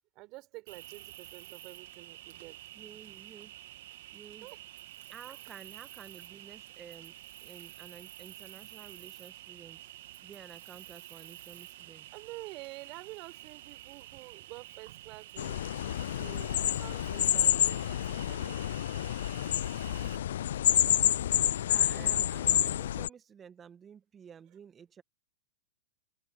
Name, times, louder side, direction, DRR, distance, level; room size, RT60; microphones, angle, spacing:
voice 1, 0.1-2.6 4.4-4.6 12.1-15.6 16.2-18.6 21.9-22.3, right 21 dB, 45° right, 4.2 m, -48 dB
Cricket, 0.7-20.2, right 15 dB, 60° right, 2.2 m, -49 dB
voice 2, 2.8-3.5 4.1-4.5 5.1-7.1 7.4-9.8 10.2-12.1 19.9-20.1 21.7-25.0, right 7 dB, 20° right, 1.9 m, -52 dB
sound 1, 15.4-23.1, left 11 dB, 70° left, 0.4 m, -28 dB
open air
hypercardioid pair, 110°, 0 cm